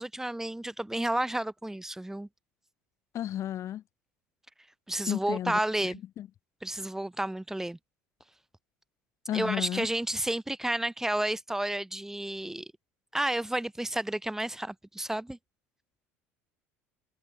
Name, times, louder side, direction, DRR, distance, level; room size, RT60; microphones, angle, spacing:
voice 1, 0.0-2.3 4.9-6.0 6.6-7.8 9.3-12.7 13.1-15.4, right 1 dB, 5° right, 6.2 m, -31 dB
voice 2, 3.1-3.8 5.1-6.3 9.3-9.9, left 11 dB, 45° left, 5.6 m, -33 dB
figure-of-eight pair, 70°, 7 cm